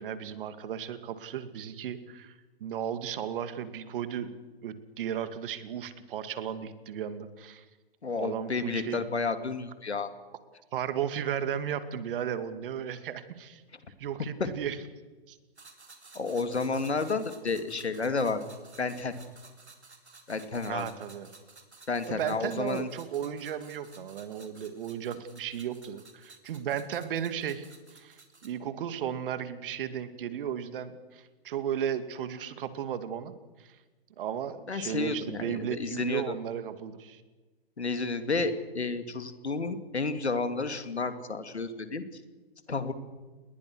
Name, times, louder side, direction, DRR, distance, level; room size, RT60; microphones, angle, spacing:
voice 1, 0.0-2.3 2.6-4.3 4.6-7.6 8.1-9.0 10.7-13.6 14.0-14.8 15.3-15.4 20.7-21.3 22.1-27.7 27.9-33.3 33.6-33.7 34.2-37.2, right 9 dB, 55° right, 11 dB, 2.5 m, -35 dB
voice 2, 8.0-10.1 16.1-18.4 18.8-19.1 20.3-20.8 21.9-22.9 34.7-36.2 37.8-42.0 42.7-42.9, left 4 dB, 90° left, 9 dB, 2.9 m, -31 dB
sound 1, 15.6-28.6, right 3 dB, 90° right, 4.2 m, -54 dB
29.5 x 21.0 x 6.4 m, 1.3 s
hypercardioid pair, 120°, 32 cm